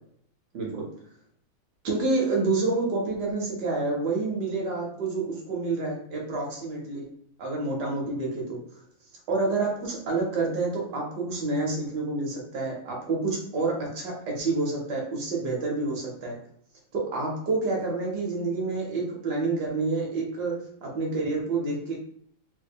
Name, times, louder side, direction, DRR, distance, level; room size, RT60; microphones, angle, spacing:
voice 1, 0.5-0.9 1.8-7.0 7.4-8.6 9.3-16.4 16.9-22.0, right 3 dB, 65° right, -1 dB, 1.2 m, -28 dB
3.9 x 2.1 x 3.4 m, 0.66 s
omnidirectional pair, 2.3 m